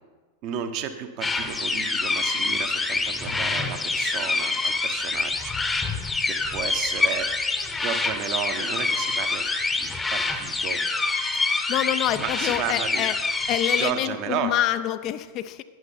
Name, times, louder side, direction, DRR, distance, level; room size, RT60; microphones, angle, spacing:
voice 1, 0.4-5.5 5.9-9.4 9.8-10.9 12.2-13.1 13.8-14.5, right 9 dB, 40° right, 7 dB, 0.9 m, -33 dB
sound 1, 1.2-13.9, left 3 dB, 10° left, 0.8 m, -26 dB
sound 2, 3.3-5.1, equal, 90° left, 1.6 m, -46 dB
voice 2, 11.3-13.2 13.5-15.6, left 13 dB, 40° left, 12 dB, 0.4 m, -27 dB
11.0 x 9.7 x 4.3 m, 1.4 s
figure-of-eight pair, 90°, 0 cm